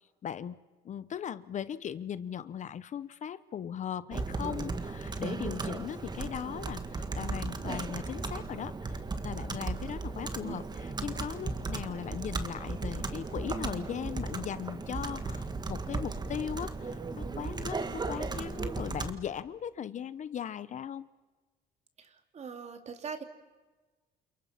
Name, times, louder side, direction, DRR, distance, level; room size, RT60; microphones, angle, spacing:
voice 1, 0.0-21.1, left 9 dB, 45° left, 16 dB, 0.9 m, -38 dB
Computer keyboard, 4.1-19.1, right 3 dB, 25° right, 1.9 m, -36 dB
voice 2, 22.0-23.2, right 6 dB, 40° right, 7 dB, 2.9 m, -42 dB
29.5 x 28.0 x 5.9 m, 1.3 s
cardioid pair, 110°, 17 cm